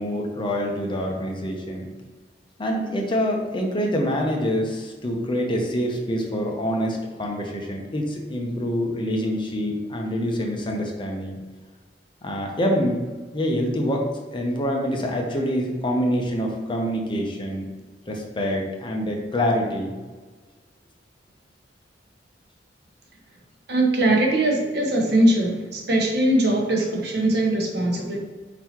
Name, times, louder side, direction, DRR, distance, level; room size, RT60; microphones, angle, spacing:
voice 1, 0.0-1.9 2.6-11.4 12.2-13.0 13.3-14.1 14.3-17.7 18.1-19.9, equal, 30° left, 1 dB, 0.7 m, -26 dB
voice 2, 23.7-28.2, right 1 dB, 65° right, 0 dB, 0.9 m, -21 dB
4.5 x 4.0 x 2.9 m, 1.4 s
head